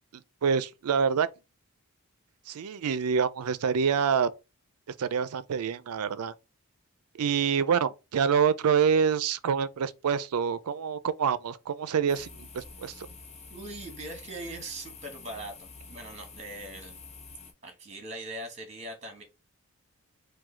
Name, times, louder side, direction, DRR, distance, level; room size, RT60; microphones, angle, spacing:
voice 1, 0.4-1.3 2.5-4.3 5.0-6.3 7.2-13.1, right 6 dB, 85° right, 0.4 m, -26 dB
sound 1, 12.1-17.5, left 4 dB, 30° left, 0.9 m, -47 dB
voice 2, 13.5-16.9 17.6-19.2, right 2 dB, 30° right, 1.1 m, -41 dB
4.6 x 2.3 x 4.3 m
head